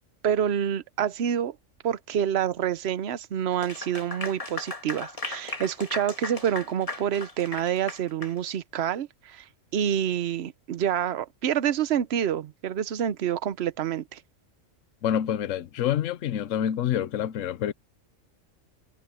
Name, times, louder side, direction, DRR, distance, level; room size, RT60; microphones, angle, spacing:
voice 1, 0.2-1.6 1.8-9.5 9.7-14.2, right 9 dB, 60° right, 1.0 m, -27 dB
Clapping / Applause, 3.5-8.4, left 2 dB, 25° left, 1.8 m, -36 dB
voice 2, 15.0-17.7, left 10 dB, 75° left, 1.1 m, -27 dB
omnidirectional pair, 1.4 m